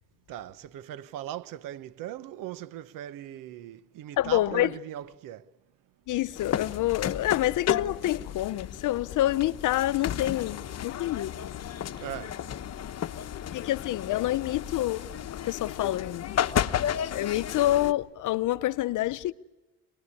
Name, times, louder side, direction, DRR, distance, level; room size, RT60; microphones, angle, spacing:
voice 1, 0.3-5.5 10.9-11.1 11.6-13.0 13.3-13.4, right 12 dB, 80° right, 1.1 m, -40 dB
voice 2, 4.2-4.8 6.1-11.6 13.5-15.1 15.3-16.4 17.1-19.3, left 14 dB, 65° left, 0.8 m, -27 dB
sound 1, 6.4-17.9, left 10 dB, 50° left, 1.1 m, -33 dB
27.0 x 20.0 x 9.8 m
cardioid pair, 95°, 33 cm